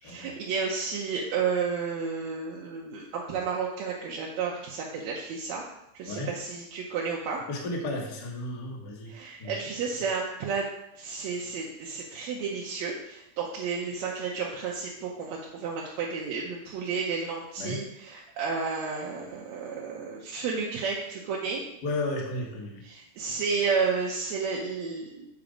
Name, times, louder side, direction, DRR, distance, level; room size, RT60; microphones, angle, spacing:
voice 1, 0.0-5.6 5.9-7.4 9.1-10.7 11.0-21.6 22.9-25.3, right 5 dB, 70° right, -2 dB, 1.9 m, -32 dB
voice 2, 7.5-9.1 9.4-9.5 17.6-17.8 21.8-22.8, left 2 dB, 60° left, 0 dB, 1.0 m, -33 dB
7.3 x 4.3 x 5.0 m, 0.85 s
omnidirectional pair, 3.6 m